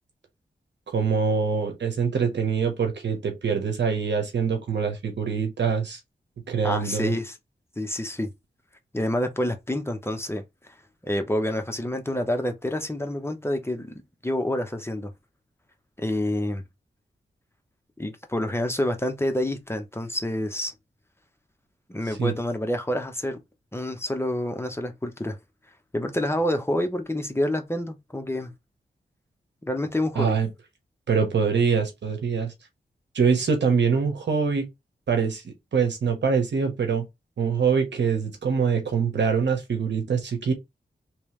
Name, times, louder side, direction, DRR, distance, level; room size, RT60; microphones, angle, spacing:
voice 1, 0.9-6.0 6.5-7.1 22.2-22.3 30.1-30.5 31.1-32.5 33.1-34.7 35.1-37.0 37.4-40.5, right 6 dB, 85° right, 1.2 m, -24 dB
voice 2, 6.6-7.3 7.8-8.3 8.9-10.7 11.0-15.1 16.0-16.6 18.0-20.7 21.9-23.4 23.7-25.4 25.9-28.5 29.6-30.4, left 1 dB, 15° left, 1.0 m, -28 dB
3.2 x 3.1 x 3.2 m
cardioid pair, 50°, 18 cm